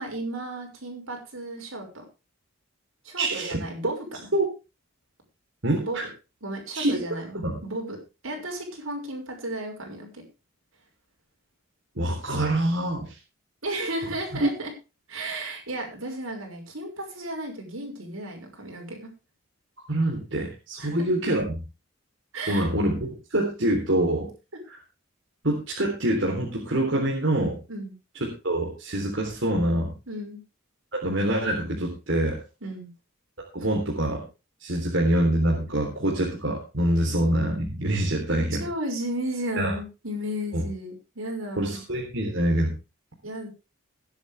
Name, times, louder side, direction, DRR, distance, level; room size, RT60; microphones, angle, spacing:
voice 1, 0.0-2.0 3.0-4.0 5.8-6.0 6.4-10.2 13.6-14.7 15.1-19.1 20.8-21.0 22.3-22.6 27.7-27.9 30.1-30.4 32.6-32.9 33.6-33.7 38.6-41.8 43.2-43.5, right 1 dB, 80° right, 2 dB, 6.1 m, -34 dB
voice 2, 3.2-3.6 4.3-4.4 5.6-6.0 6.7-7.0 7.4-7.6 12.0-13.2 14.4-14.5 19.9-21.6 22.5-24.3 25.4-27.6 28.2-29.9 30.9-32.4 33.5-34.2 34.6-38.6 39.6-39.7 40.5-40.6 41.6-42.7, right 1 dB, 60° right, -2 dB, 3.8 m, -25 dB
21.0 x 8.3 x 3.5 m, 0.30 s
head